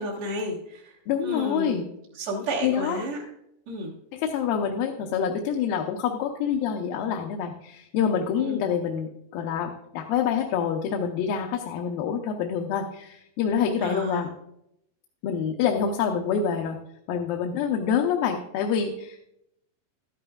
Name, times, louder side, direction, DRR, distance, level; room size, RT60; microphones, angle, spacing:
voice 1, 0.0-1.8 2.1-3.2 3.7-3.9 8.4-8.6 13.8-14.3, right 1 dB, 50° right, -5 dB, 1.8 m, -32 dB
voice 2, 1.1-1.9 2.6-3.0 4.1-14.3 15.2-16.8 17.1-19.2, left 7 dB, 85° left, 2 dB, 2.6 m, -26 dB
12.5 x 11.0 x 2.3 m, 0.79 s
omnidirectional pair, 4.0 m